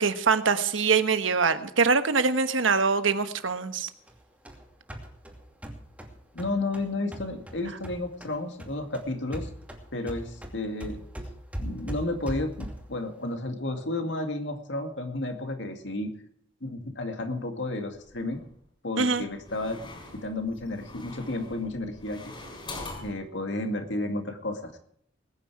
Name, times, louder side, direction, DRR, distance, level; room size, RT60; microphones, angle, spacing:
voice 1, 0.0-3.9 19.0-19.3, right 5 dB, 90° right, 10 dB, 1.2 m, -24 dB
sound 1, 4.1-8.3 8.6-13.0, equal, 10° right, 2.5 m, -40 dB
voice 2, 6.3-9.5 9.9-11.0 11.6-16.1 16.6-18.4 18.8-19.9 20.1-22.2 23.0-24.8, left 2 dB, 65° left, 5 dB, 2.2 m, -32 dB
sound 2, 17.9-18.5 19.2-23.2, left 2 dB, 25° left, 4.3 m, -43 dB
20.5 x 9.7 x 4.8 m, 0.65 s
head